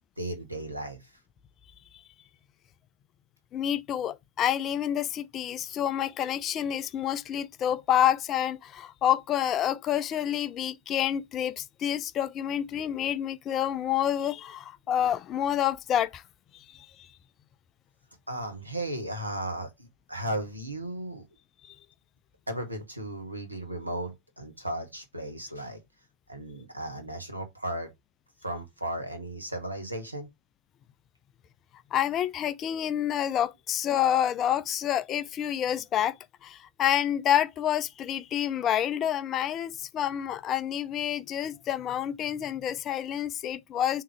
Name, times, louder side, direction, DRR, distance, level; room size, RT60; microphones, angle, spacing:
voice 1, 0.2-1.0 18.3-21.3 22.5-25.8 26.3-27.9 28.4-30.3, right 1 dB, 85° right, 0.9 m, -35 dB
voice 2, 3.5-16.2 16.5-16.9 21.6-21.8 31.9-36.2 36.4-44.0, left 10 dB, 30° left, 0.3 m, -28 dB
3.6 x 3.0 x 4.7 m
figure-of-eight pair, 90°, 0 cm